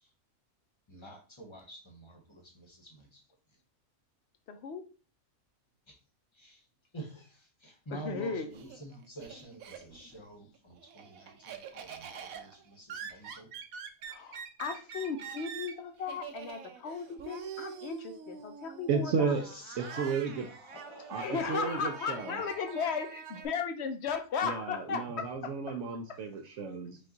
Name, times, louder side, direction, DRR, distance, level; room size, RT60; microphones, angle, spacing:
voice 1, 0.9-3.2 5.9-6.0 6.3-6.6 6.9-13.5 19.3-21.5 22.1-22.9, right 1 dB, 25° left, 2 dB, 0.8 m, -49 dB
voice 2, 4.5-4.9 7.9-8.5 14.0-19.4 21.2-25.8 26.1-26.2, left 5 dB, 65° left, 8 dB, 0.7 m, -36 dB
Laughter, 8.1-10.2 10.6-23.5, right 7 dB, 90° right, 1.1 m, -45 dB
voice 3, 18.9-19.4 19.8-20.5 21.1-22.4 24.4-27.0, right 5 dB, 70° right, 4 dB, 0.9 m, -33 dB
5.3 x 2.3 x 3.8 m, 0.35 s
omnidirectional pair, 1.4 m